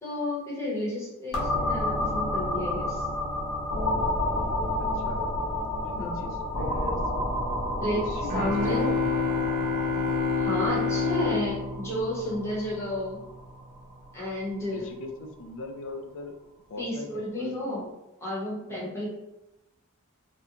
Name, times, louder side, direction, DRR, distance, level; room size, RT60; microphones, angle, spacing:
voice 1, 0.0-3.0 6.0-6.2 7.8-8.0 8.3-9.0 10.4-13.2 14.1-14.9 16.8-17.9 18.2-19.1, left 1 dB, 10° left, -6 dB, 0.8 m, -31 dB
sound 1, 1.3-14.9, left 1 dB, 85° left, 0.7 m, -31 dB
voice 2, 4.8-5.3 5.8-7.0 7.9-9.3 14.7-16.3 16.7-17.8, left 3 dB, 60° left, 5 dB, 0.4 m, -40 dB
sound 2, 8.3-13.0, left 4 dB, 40° right, 0.3 m, -28 dB
2.4 x 2.1 x 2.8 m, 0.91 s
head